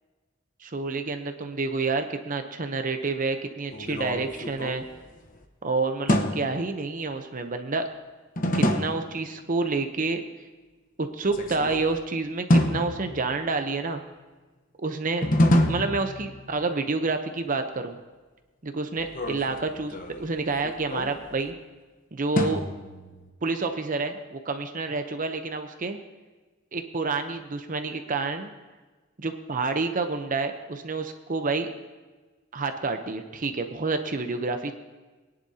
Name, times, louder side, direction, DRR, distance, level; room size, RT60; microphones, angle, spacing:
voice 1, 0.6-4.8 5.6-7.9 8.5-10.2 11.0-14.0 14.8-15.3 15.7-18.0 18.6-21.5 22.1-22.6 23.4-26.0 26.7-28.5 29.2-31.7 32.5-34.7, right 3 dB, 45° right, 7 dB, 0.8 m, -29 dB
sound 1, 3.7-5.4 6.1-6.7 8.4-9.2 11.2-12.0 12.5-13.6 15.2-16.6 19.0-21.5 22.4-23.3, equal, 45° left, 1.1 m, -26 dB
21.5 x 10.5 x 2.8 m, 1.3 s
head